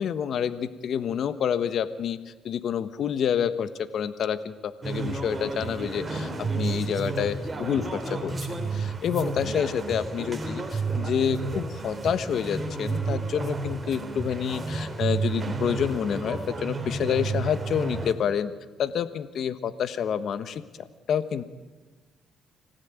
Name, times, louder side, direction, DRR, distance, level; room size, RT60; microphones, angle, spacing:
voice 1, 0.0-6.3 6.6-8.3 8.7-18.5 18.8-21.4, left 8 dB, 65° left, 13 dB, 1.2 m, -28 dB
sound 1, 4.8-18.1, right 4 dB, 25° right, 3.6 m, -31 dB
25.5 x 16.5 x 9.1 m, 1.3 s
cardioid pair, 90°, 0 cm